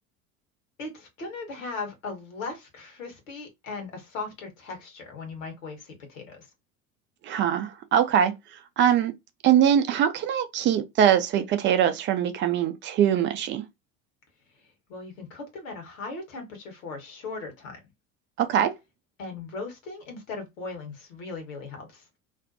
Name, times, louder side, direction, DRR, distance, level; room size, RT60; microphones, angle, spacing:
voice 1, 0.8-6.5 14.6-17.8 19.2-22.1, left 3 dB, 70° left, 1.1 m, -38 dB
voice 2, 7.2-8.3 8.8-9.1 9.4-13.6 18.4-18.7, right 9 dB, 30° right, 0.4 m, -22 dB
2.5 x 2.1 x 2.5 m
figure-of-eight pair, 65°, 41 cm